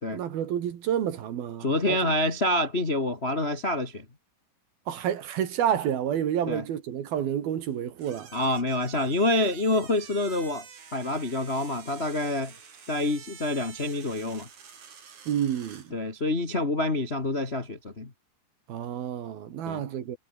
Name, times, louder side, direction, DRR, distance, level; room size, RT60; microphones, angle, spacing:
voice 1, 0.1-2.1 4.9-8.3 15.3-15.9 18.7-20.2, right 9 dB, 65° right, 3.7 m, -29 dB
voice 2, 1.6-4.0 6.5-6.6 8.3-10.6 10.9-12.5 12.9-14.5 15.9-18.1 19.6-19.8, left 1 dB, 40° left, 0.8 m, -27 dB
sound 1, 8.0-15.9, right 6 dB, 45° right, 4.6 m, -48 dB
omnidirectional pair, 5.0 m